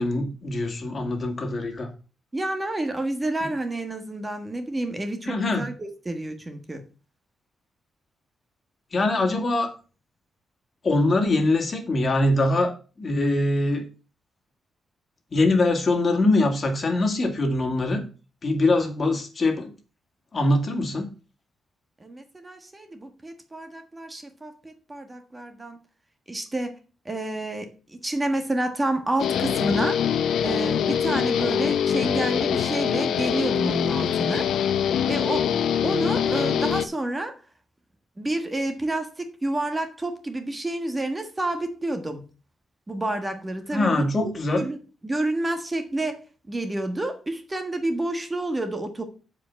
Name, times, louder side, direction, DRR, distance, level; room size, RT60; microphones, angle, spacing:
voice 1, 0.0-1.9 3.4-3.5 5.3-5.7 8.9-9.7 10.8-13.8 15.3-18.0 18.4-19.7 20.3-21.1 43.7-44.6, left 2 dB, 40° left, 3 dB, 2.3 m, -23 dB
voice 2, 2.3-6.8 22.0-25.8 26.3-26.7 27.0-30.2 30.4-34.5 35.1-35.5 35.8-37.4 38.2-42.2 42.9-44.8 45.0-49.0, right 1 dB, 20° right, 7 dB, 1.5 m, -29 dB
Guitar, 29.2-36.9, left 8 dB, 85° left, 0.7 m, -24 dB
7.4 x 5.0 x 7.1 m, 0.36 s
cardioid pair, 100°, 0 cm